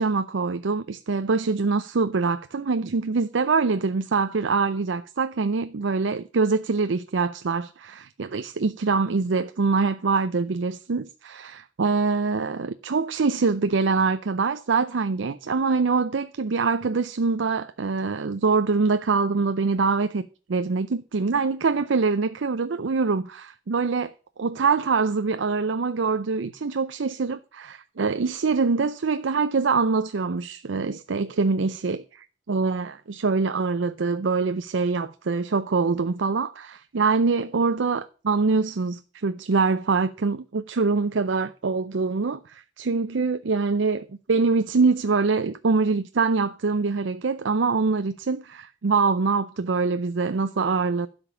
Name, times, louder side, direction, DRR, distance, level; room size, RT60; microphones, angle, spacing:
voice 1, 0.0-24.1 24.4-51.1, right 4 dB, 85° right, 0.5 m, -24 dB
12.0 x 5.3 x 7.0 m
head